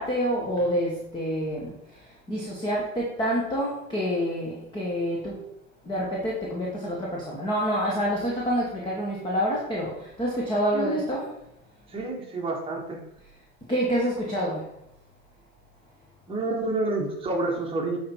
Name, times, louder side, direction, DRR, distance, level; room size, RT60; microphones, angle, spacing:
voice 1, 0.0-1.7 2.3-5.4 5.8-11.2 13.7-14.6, equal, 10° left, -4 dB, 1.5 m, -27 dB
voice 2, 10.7-11.1 11.9-13.0 16.3-18.0, right 2 dB, 10° right, -1 dB, 1.6 m, -28 dB
8.2 x 4.4 x 4.5 m, 0.81 s
hypercardioid pair, 110°, 45 cm